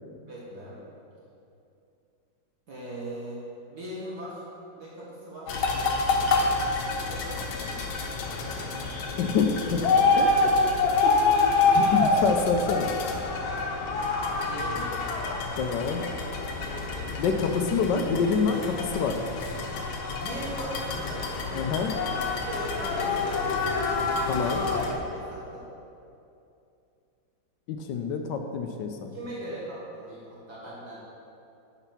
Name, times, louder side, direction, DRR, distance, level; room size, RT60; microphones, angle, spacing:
voice 1, 0.3-0.8 2.7-3.4 3.7-4.4 4.8-6.5 6.9-8.1 14.5-15.2 15.5-17.2 20.2-21.8 22.2-23.5 24.4-25.7 29.1-31.0, right 1 dB, 55° right, -6 dB, 1.8 m, -40 dB
sound 1, 5.5-24.9, left 3 dB, 90° left, 1.7 m, -27 dB
voice 2, 9.2-9.8 10.2-10.5 11.0-12.9 15.6-16.0 17.2-19.2 21.6-21.9 24.3-24.6 27.7-29.1, left 5 dB, 75° left, 5 dB, 1.2 m, -27 dB
10.0 x 4.5 x 5.8 m, 2.6 s
omnidirectional pair, 2.1 m